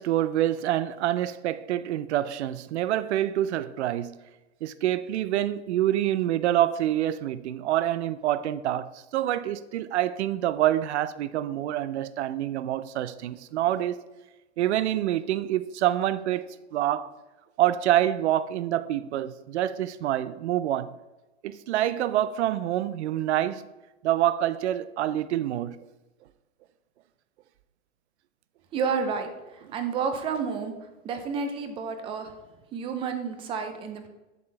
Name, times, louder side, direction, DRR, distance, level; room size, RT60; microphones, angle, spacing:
voice 1, 0.0-4.1 4.6-14.0 14.6-17.1 17.6-20.9 21.4-23.7 24.0-25.8, right 12 dB, 70° right, 0.6 m, -26 dB
voice 2, 28.7-30.7 31.0-32.3 32.7-34.1, right 5 dB, 15° right, 0.5 m, -30 dB
7.6 x 6.1 x 3.3 m
hypercardioid pair, 145°, 35 cm